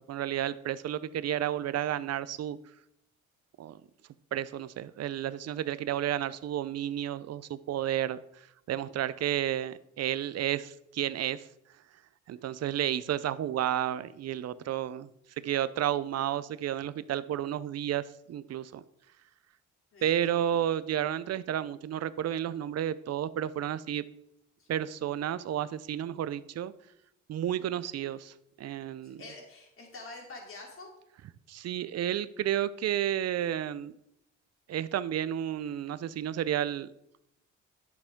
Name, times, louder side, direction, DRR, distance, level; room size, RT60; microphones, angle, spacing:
voice 1, 0.0-2.6 3.6-3.8 4.3-8.2 8.7-11.4 12.3-15.1 15.4-18.8 20.0-24.0 24.7-26.7 27.3-29.2 31.5-33.9 34.7-36.9, right 11 dB, 55° right, 16 dB, 0.6 m, -31 dB
voice 2, 19.9-20.3 24.6-24.7 29.0-30.9, left 2 dB, 45° left, -1 dB, 3.2 m, -47 dB
10.5 x 7.0 x 3.6 m, 0.79 s
cardioid pair, 90°, 30 cm